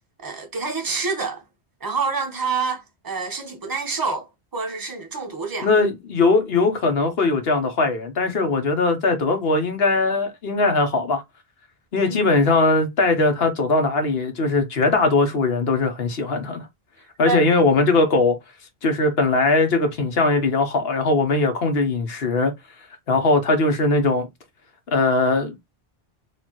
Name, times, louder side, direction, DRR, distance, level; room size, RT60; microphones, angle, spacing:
voice 1, 0.2-1.4 1.8-4.3 4.5-5.7 12.0-12.4 17.2-17.4, right 4 dB, 20° right, 0.9 m, -27 dB
voice 2, 5.6-11.2 11.9-16.6 17.2-18.4 18.8-22.5 23.1-24.3 24.9-25.6, left 3 dB, 70° left, 1.2 m, -20 dB
4.3 x 2.8 x 2.9 m
omnidirectional pair, 1.1 m